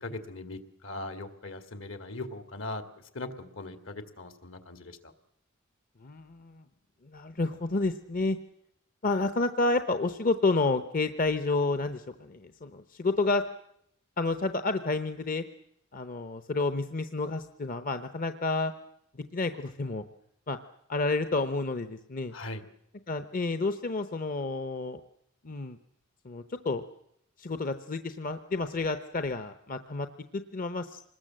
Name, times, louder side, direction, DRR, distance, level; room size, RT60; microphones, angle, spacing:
voice 1, 0.0-2.8 3.1-5.1 22.3-22.6, left 2 dB, 70° left, 8 dB, 2.2 m, -40 dB
voice 2, 6.0-6.6 7.0-8.4 9.0-13.4 14.2-15.4 15.9-18.7 19.1-20.0 20.5-20.6 20.9-22.3 23.1-25.0 25.4-25.8 26.2-26.8 27.4-30.1 30.3-31.0, left 3 dB, 40° left, 10 dB, 0.8 m, -30 dB
26.0 x 20.0 x 7.6 m, 0.73 s
head